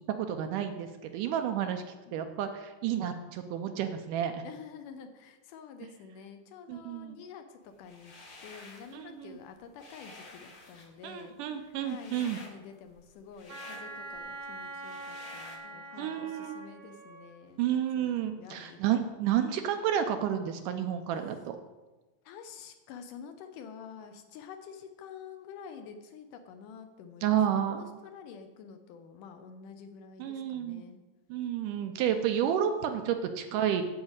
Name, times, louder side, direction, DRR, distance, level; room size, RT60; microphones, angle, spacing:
voice 1, 0.2-1.8 2.1-4.4 6.7-7.2 8.9-9.4 11.0-12.4 16.0-16.6 17.6-21.6 27.2-28.0 30.2-30.8 31.3-33.8, right 9 dB, 80° right, 7 dB, 2.1 m, -31 dB
voice 2, 4.4-8.1 8.4-18.9 22.3-31.0, left 6 dB, 75° left, 7 dB, 2.1 m, -48 dB
sound 1, 7.8-8.9 9.3-15.6, left 2 dB, 60° left, 0.9 m, -51 dB
Wind instrument woodwind instrument, 13.5-17.3, right 2 dB, 50° right, 1.2 m, -43 dB
9.6 x 4.9 x 8.0 m, 1.1 s
omnidirectional pair, 4.0 m